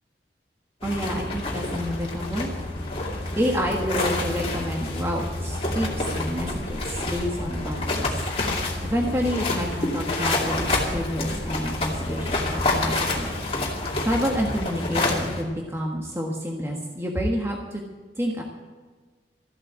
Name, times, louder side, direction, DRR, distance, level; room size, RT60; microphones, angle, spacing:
sound 1, 0.8-15.4, left 2 dB, 35° left, 2.5 m, -28 dB
voice 1, 0.8-2.5 3.3-8.2 8.8-13.3 14.0-17.8 18.2-18.4, equal, 15° right, 0 dB, 1.4 m, -28 dB
14.5 x 8.2 x 8.6 m, 1.4 s
head